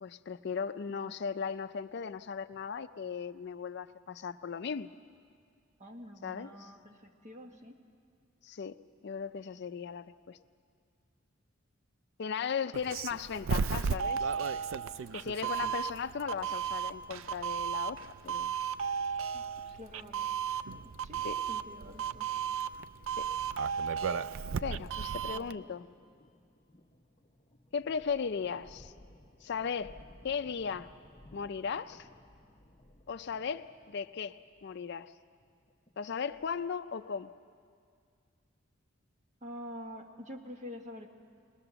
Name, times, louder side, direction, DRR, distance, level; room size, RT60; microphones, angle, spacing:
voice 1, 0.0-4.9 6.2-6.7 8.4-8.8 9.0-10.4 12.2-14.3 15.1-18.0 18.2-18.5 21.2-21.4 23.2-23.3 24.6-25.9 27.7-28.9 29.4-29.9 30.2-30.9 31.3-32.1 33.1-35.1 36.0-37.3, left 6 dB, 55° left, 11 dB, 0.4 m, -37 dB
voice 2, 5.8-7.8 19.3-19.4 19.7-20.3 20.8-22.3 25.3-25.8 39.4-41.1, equal, 35° right, 3 dB, 1.5 m, -47 dB
Doorbell, 12.7-25.5, right 7 dB, 75° right, 0.4 m, -34 dB
sound 1, 20.7-36.8, left 1 dB, 25° left, 0.9 m, -60 dB
21.5 x 19.5 x 6.9 m, 2.2 s
head